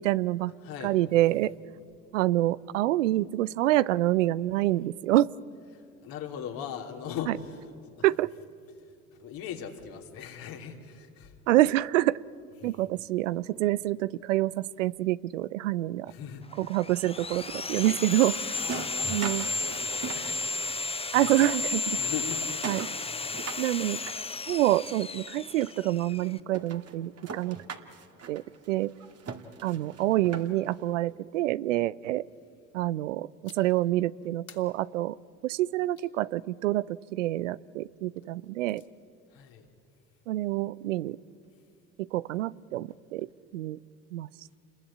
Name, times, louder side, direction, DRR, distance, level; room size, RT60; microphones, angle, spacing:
voice 1, 0.0-0.5 0.8-1.5 2.1-5.3 8.0-8.3 11.5-12.2 12.6-16.1 16.6-18.4 19.1-19.5 21.1-22.0 22.7-22.9 23.6-24.0 24.5-27.6 28.3-28.9 29.6-32.3 32.7-35.2 35.4-38.8 40.3-41.2 42.0-43.8 44.1-44.3, right 15 dB, 85° right, 20 dB, 0.5 m, -27 dB
voice 2, 0.6-1.2 5.7-8.1 8.8-11.4 12.6-12.8 16.1-16.8 18.5-21.5 22.0-23.5 39.3-39.7, left 7 dB, 70° left, 2 dB, 3.2 m, -41 dB
Sawing, 16.5-26.4, left 4 dB, 15° left, 0.7 m, -34 dB
sound 1, 17.2-20.9 21.2-24.9 25.6-25.7 26.1-26.2 26.5-30.8, right 5 dB, 45° right, 2.1 m, -42 dB
sound 2, 33.4-33.9 34.5-36.2 38.3-38.9, left 6 dB, 40° left, 3.0 m, -56 dB
29.0 x 21.0 x 8.6 m, 2.4 s
hypercardioid pair, 55°, 36 cm